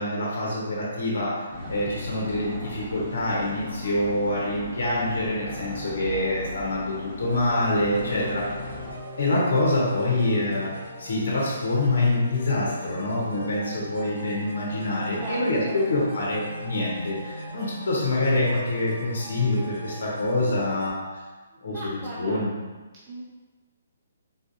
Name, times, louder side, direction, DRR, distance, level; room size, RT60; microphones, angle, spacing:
voice 1, 0.0-8.4 9.0-10.7 11.0-21.0 21.6-22.5, left 2 dB, 70° left, -4 dB, 0.9 m, -26 dB
sound 1, 1.5-9.0, left 1 dB, 10° right, 1.3 m, -38 dB
sound 2, 7.2-20.9, equal, 80° right, 1.4 m, -41 dB
voice 2, 8.0-8.6 15.2-15.8 19.9-20.0 21.6-22.5 22.9-23.2, right 1 dB, 30° right, -7 dB, 0.5 m, -37 dB
3.9 x 2.6 x 2.5 m, 1.3 s
hypercardioid pair, 140°, 0 cm